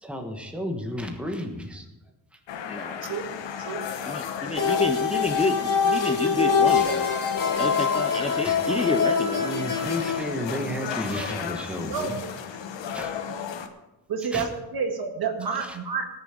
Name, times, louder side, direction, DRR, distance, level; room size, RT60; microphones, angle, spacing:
voice 1, 0.0-1.9 2.3-2.4 4.5-4.6 6.7-6.9 7.4-7.5 8.4-8.5 9.4-12.2 12.9-13.1 13.4-13.8 14.3-14.5 15.6-15.8, equal, 5° right, 3 dB, 1.3 m, -33 dB
sound 1, 2.5-13.7, left 7 dB, 80° left, 1.2 m, -35 dB
voice 2, 2.7-3.0 4.0-7.1 7.6-9.4, left 2 dB, 15° left, 6 dB, 0.5 m, -29 dB
sound 2, 4.5-10.2, left 6 dB, 50° left, 1.7 m, -24 dB
voice 3, 14.1-16.1, right 5 dB, 55° right, 4 dB, 1.9 m, -29 dB
18.5 x 7.0 x 5.1 m, 1.0 s
wide cardioid pair, 155°, 43 cm